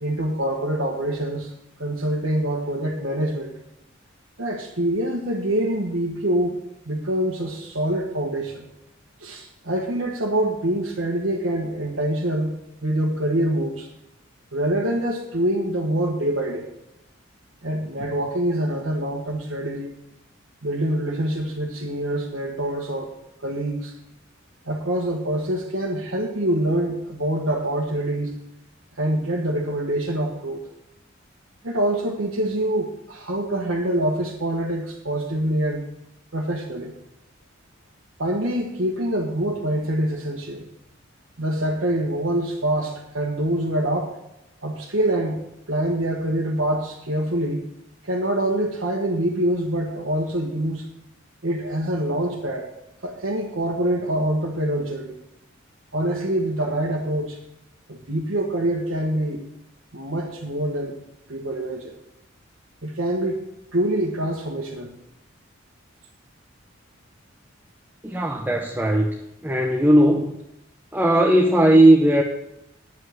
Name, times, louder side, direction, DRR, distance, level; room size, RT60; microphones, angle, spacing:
voice 1, 0.0-1.5 1.8-3.6 4.4-6.6 6.8-8.7 9.2-13.9 14.5-16.7 17.6-19.9 20.6-23.1 23.4-23.9 24.7-28.3 29.0-30.6 31.6-35.8 36.3-36.9 38.2-40.7 41.4-44.1 44.6-47.6 48.0-50.8 51.4-52.7 53.0-55.2 55.9-57.4 57.9-59.4 59.9-61.0 61.3-61.9 62.8-63.4 63.7-64.9, right 1 dB, 65° right, -3 dB, 1.4 m, -25 dB
voice 2, 68.0-69.1 69.4-70.3 70.9-72.2, right 1 dB, 10° right, 1 dB, 0.8 m, -17 dB
9.7 x 5.4 x 7.8 m, 0.87 s
head